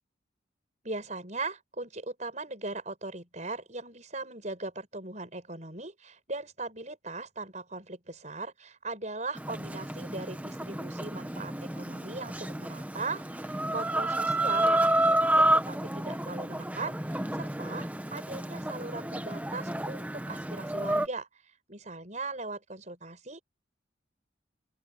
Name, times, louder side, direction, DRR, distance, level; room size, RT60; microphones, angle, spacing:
voice 1, 0.8-23.4, right 3 dB, 40° right, 6.0 m, -39 dB
Chicken rooster, 9.4-21.1, right 1 dB, 10° right, 1.1 m, -30 dB
open air
head